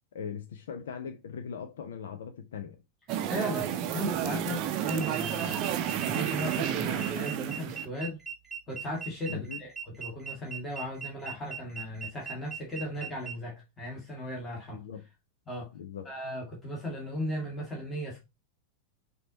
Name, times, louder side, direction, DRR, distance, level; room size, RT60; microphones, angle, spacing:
voice 1, 0.1-2.8 4.5-4.6 9.3-9.6 14.7-15.0 15.7-16.1, left 7 dB, 60° left, 0.4 m, -40 dB
sound 1, 3.1-7.9, right 10 dB, 40° right, 0.6 m, -31 dB
voice 2, 3.2-5.6 6.0-8.2 8.7-14.8 15.5-15.7 16.0-18.2, equal, 15° left, 1.6 m, -37 dB
sound 2, 4.8-13.3, right 7 dB, 5° right, 1.9 m, -40 dB
5.9 x 2.8 x 2.7 m
figure-of-eight pair, 90°, 0 cm